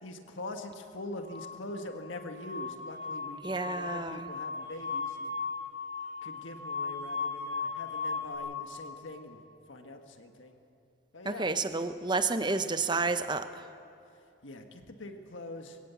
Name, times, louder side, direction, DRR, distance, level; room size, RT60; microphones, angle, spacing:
voice 1, 0.0-5.3 6.2-9.4 9.7-10.6 11.1-11.5 14.4-15.8, left 2 dB, 75° left, 5 dB, 1.6 m, -43 dB
sound 1, 1.2-8.4, left 4 dB, 45° right, 5.2 m, -37 dB
voice 2, 3.4-4.3 11.2-13.6, right 3 dB, 20° right, 10 dB, 0.8 m, -30 dB
22.5 x 17.5 x 8.3 m, 2.5 s
head